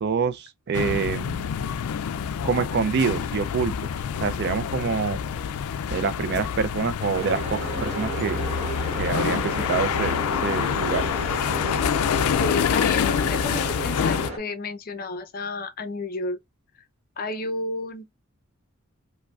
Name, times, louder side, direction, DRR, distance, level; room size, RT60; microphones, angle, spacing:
voice 1, 0.0-1.4 2.4-3.7 4.2-5.2 5.9-8.4 9.0-10.1 10.4-11.0, right 5 dB, 50° right, 0.4 m, -26 dB
sound 1, 0.7-14.3, left 8 dB, 90° left, 0.3 m, -27 dB
sound 2, 7.1-14.4, right 1 dB, 30° right, 1.2 m, -33 dB
voice 2, 12.3-16.4 17.2-18.1, left 3 dB, 45° left, 0.6 m, -31 dB
4.7 x 2.1 x 2.3 m
head